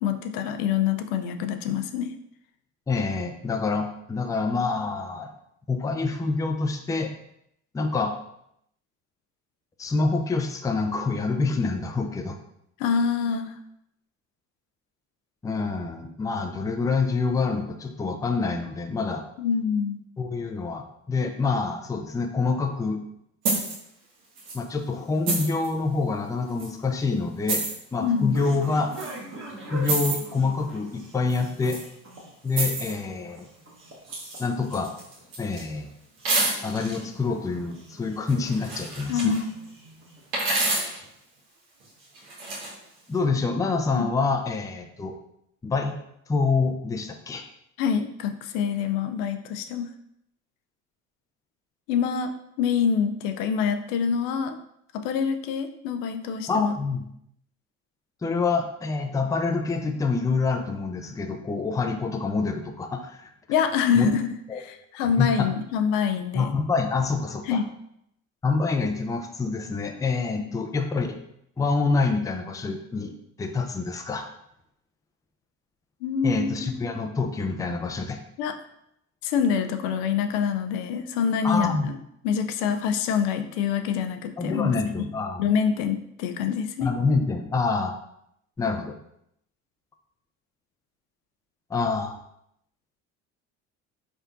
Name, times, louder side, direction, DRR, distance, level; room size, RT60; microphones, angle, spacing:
voice 1, 0.0-2.1 12.8-13.6 19.4-20.0 28.0-28.4 39.1-39.5 43.9-44.1 47.8-49.9 51.9-52.3 52.6-54.6 54.9-56.7 63.5-64.3 64.6-66.5 67.5-67.6 70.4-70.5 76.0-76.9 78.4-78.5 79.2-82.0 82.2-84.7 85.0-85.1 85.4-86.9, left 7 dB, 75° left, 7 dB, 0.5 m, -26 dB
voice 2, 2.9-5.3 5.7-7.1 7.7-8.2 9.8-12.4 15.4-19.2 20.2-23.0 24.5-27.6 27.9-28.9 29.7-31.8 32.4-33.5 34.4-34.9 35.4-35.9 36.6-39.4 43.1-45.1 45.6-45.9 46.3-47.4 56.5-57.1 58.2-63.3 63.9-64.1 64.5-64.6 65.2-65.5 66.3-67.6 68.4-71.2 71.6-74.3 76.2-78.2 81.4-81.9 84.4-85.5 86.8-87.9 88.6-88.9 91.7-92.2, left 4 dB, 10° left, 5 dB, 0.4 m, -26 dB
sound 1, 23.5-23.8 24.4-24.6 25.3-25.7 26.6-26.7 27.5-27.7 28.9-29.1 29.8-30.2 31.3-31.8 32.5-33.0 34.1-34.4 34.7-35.6 36.2-37.0 38.3-39.4 40.3-41.0 42.2-42.7, right 3 dB, 70° right, 1.4 m, -28 dB
sound 2, 27.2-40.6, right 1 dB, 30° right, 1.3 m, -44 dB
4.3 x 3.4 x 2.5 m, 0.76 s
hypercardioid pair, 65°, 38 cm